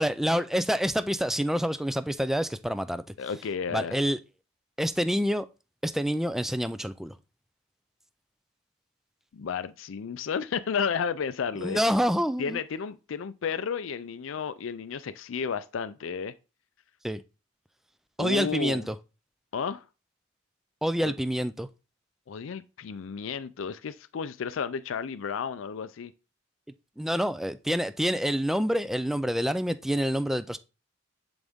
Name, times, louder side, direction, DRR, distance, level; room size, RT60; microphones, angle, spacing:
voice 1, 0.0-3.0 3.7-4.2 4.8-5.5 5.8-7.1 11.6-12.6 17.0-17.2 18.2-18.9 20.8-21.7 27.0-30.6, equal, ahead, 0.4 m, -27 dB
voice 2, 3.2-4.0 9.3-11.8 12.4-16.3 18.2-18.8 19.5-19.8 21.0-21.1 22.3-26.1, left 6 dB, 75° left, 0.4 m, -32 dB
10.5 x 4.0 x 3.6 m
head